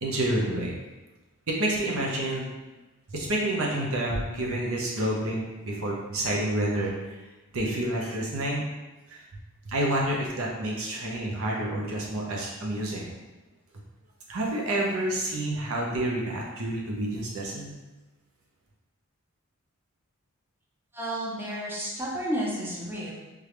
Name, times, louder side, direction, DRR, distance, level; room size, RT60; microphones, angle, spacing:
voice 1, 0.0-0.7 1.5-2.5 3.1-6.9 7.5-8.6 9.1-9.2 9.6-13.2 14.3-17.7, right 1 dB, 70° right, -2 dB, 0.8 m, -29 dB
voice 2, 20.9-23.1, equal, 10° right, -6 dB, 0.8 m, -31 dB
3.6 x 3.3 x 3.2 m, 1.1 s
head